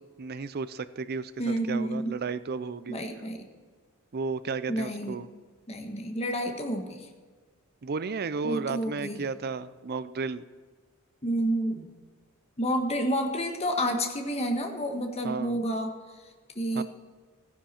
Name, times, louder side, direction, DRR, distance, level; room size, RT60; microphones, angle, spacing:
voice 1, 0.2-3.0 4.1-5.3 7.8-10.4 15.2-15.6 16.7-16.8, right 4 dB, 45° right, 14 dB, 0.5 m, -33 dB
voice 2, 1.4-2.1 2.9-3.4 4.7-5.2 5.7-7.1 8.4-9.3 11.2-11.9 12.6-15.9 16.5-16.8, equal, 30° left, 4 dB, 1.3 m, -29 dB
14.5 x 10.5 x 4.4 m, 1.5 s
head